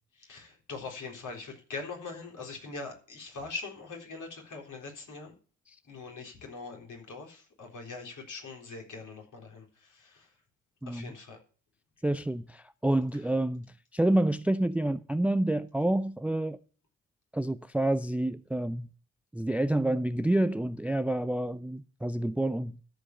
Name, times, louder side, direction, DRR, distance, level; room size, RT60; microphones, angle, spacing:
voice 1, 0.1-5.3 5.8-10.3 10.9-11.4, left 3 dB, 50° left, 3.9 m, -42 dB
voice 2, 10.8-11.1 12.0-13.7 13.9-16.6 17.3-18.9 19.3-22.8, right 1 dB, 5° right, 0.5 m, -28 dB
13.5 x 5.2 x 7.1 m
hypercardioid pair, 45°, 38 cm